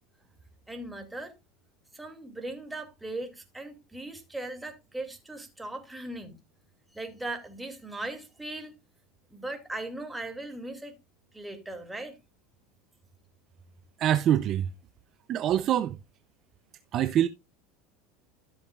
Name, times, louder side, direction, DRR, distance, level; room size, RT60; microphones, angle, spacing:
voice 1, 0.7-1.3 1.9-6.4 6.9-8.7 9.3-11.0 11.3-12.2, right 2 dB, 10° right, 2.6 m, -38 dB
voice 2, 14.0-14.7 15.3-16.0 16.9-17.3, right 11 dB, 45° right, 0.6 m, -24 dB
14.0 x 7.1 x 2.4 m
supercardioid pair, 100°, 0 cm